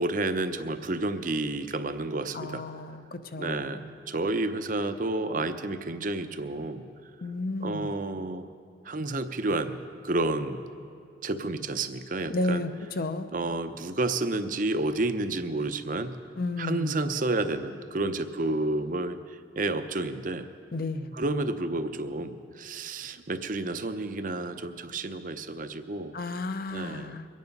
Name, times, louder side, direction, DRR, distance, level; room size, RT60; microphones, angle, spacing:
voice 1, 0.0-2.6 3.4-6.8 7.6-8.4 8.9-9.8 10.0-10.6 11.2-12.6 13.3-16.1 16.6-19.2 19.6-20.5 21.1-26.1 26.7-27.2, right 2 dB, 50° right, 10 dB, 0.7 m, -30 dB
voice 2, 2.3-4.0 7.2-7.9 12.3-13.3 16.4-17.0 20.7-21.1 26.1-27.3, left 2 dB, 55° left, 10 dB, 0.7 m, -32 dB
23.0 x 9.4 x 5.4 m, 2.4 s
head